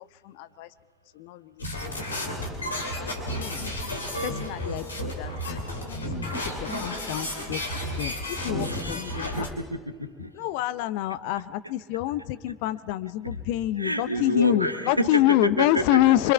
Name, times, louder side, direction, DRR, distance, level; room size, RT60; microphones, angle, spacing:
voice 1, 0.3-0.7 1.2-1.4 1.8-1.9 2.2-2.3 2.9-3.6 4.2-6.3 6.8-7.6 8.0-8.1 8.4-9.3 10.4-16.3, left 14 dB, 60° left, 15 dB, 0.7 m, -26 dB
sound 1, 1.6-9.5, left 1 dB, 80° left, 3.0 m, -32 dB
voice 2, 8.6-10.3 11.6-11.7 13.2-13.4 13.8-16.0, right 1 dB, 90° right, 10 dB, 1.2 m, -30 dB
27.0 x 25.5 x 4.6 m, 1.5 s
figure-of-eight pair, 60°, 0 cm